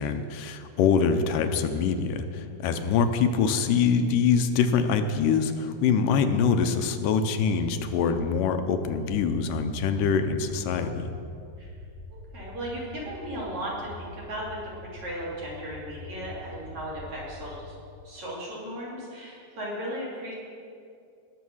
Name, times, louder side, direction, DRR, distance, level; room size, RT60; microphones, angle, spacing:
voice 1, 0.0-11.1, left 6 dB, 85° left, 7 dB, 2.4 m, -24 dB
sound 1, 7.6-17.6, left 2 dB, 65° left, 0.8 m, -45 dB
voice 2, 12.1-17.7 18.0-20.3, equal, 60° right, -5 dB, 4.4 m, -36 dB
18.5 x 7.7 x 6.3 m, 2.4 s
omnidirectional pair, 3.7 m